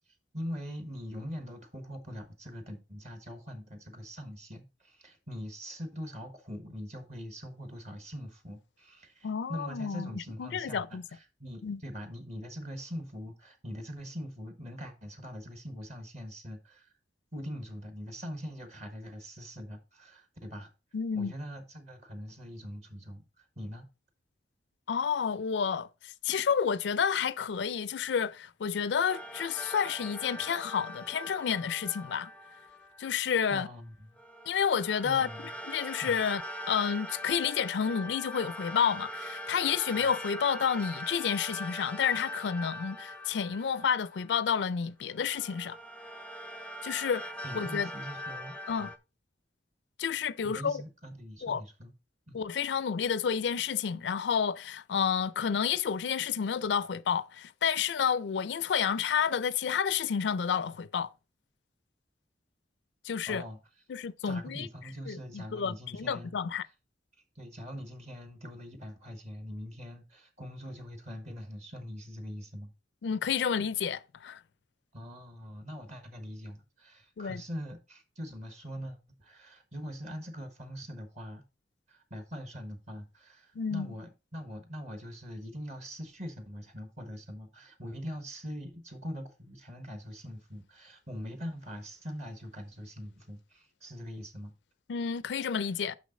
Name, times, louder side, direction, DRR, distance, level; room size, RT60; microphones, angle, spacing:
voice 1, 0.3-16.9 17.3-20.7 21.1-23.9 33.5-34.2 35.0-35.5 36.0-36.2 40.0-40.1 47.4-48.9 50.4-51.9 52.3-52.4 63.3-63.6 64.3-66.3 67.3-72.7 74.9-81.4 81.9-94.5, equal, 40° right, 1.2 m, -42 dB
voice 2, 9.2-11.0 11.6-11.8 20.9-21.3 24.9-32.3 33.0-33.7 34.5-35.3 35.6-36.4 36.7-45.8 46.8-47.9 48.7-48.9 50.0-50.8 51.4-51.6 52.3-61.1 63.0-63.4 63.9-64.7 65.1-66.6 73.0-74.4 77.2-77.4 83.6-83.9 94.9-95.9, left 7 dB, 80° left, 0.4 m, -30 dB
sound 1, 29.1-33.2 34.2-44.6 45.1-49.0, equal, 5° left, 0.4 m, -42 dB
6.3 x 5.9 x 3.7 m
head